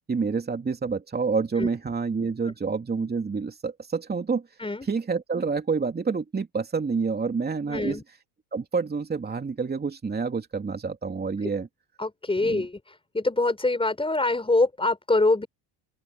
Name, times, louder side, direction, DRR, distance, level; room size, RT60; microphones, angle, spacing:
voice 1, 0.1-4.5 4.8-8.0 8.5-11.7 12.4-12.6, right 5 dB, 20° right, 3.0 m, -28 dB
voice 2, 7.7-8.0 12.0-15.5, left 2 dB, 10° left, 5.9 m, -24 dB
open air
supercardioid pair, 90°, 46 cm